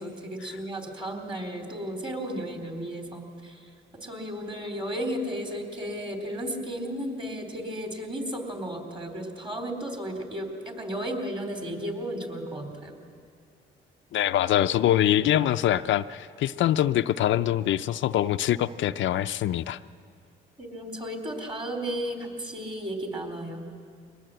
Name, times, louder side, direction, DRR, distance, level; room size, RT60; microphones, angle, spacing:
voice 1, 0.0-3.7 4.0-13.0 20.6-23.7, equal, 25° right, 3 dB, 3.9 m, -34 dB
voice 2, 14.1-19.8, left 12 dB, 70° left, 10 dB, 0.5 m, -24 dB
23.0 x 19.0 x 7.9 m, 2.1 s
cardioid pair, 90°, 20 cm